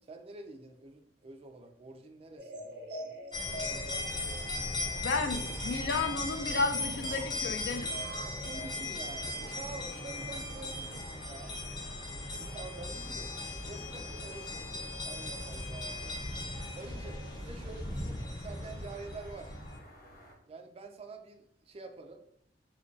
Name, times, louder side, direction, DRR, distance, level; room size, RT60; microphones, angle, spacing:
voice 1, 0.1-3.2 3.6-4.4 8.2-11.5 12.4-13.3 13.6-16.2 16.7-19.6 20.5-22.4, right 3 dB, 35° right, 6 dB, 0.3 m, -48 dB
sound 1, 2.4-10.4, equal, 75° right, 0.8 m, -46 dB
sound 2, 3.3-19.8, left 2 dB, 25° left, 0.7 m, -38 dB
voice 2, 5.0-7.9, left 3 dB, 65° left, 6 dB, 0.4 m, -32 dB
sound 3, 9.1-20.3, equal, 50° left, 0.8 m, -55 dB
2.6 x 2.2 x 3.6 m, 0.75 s
head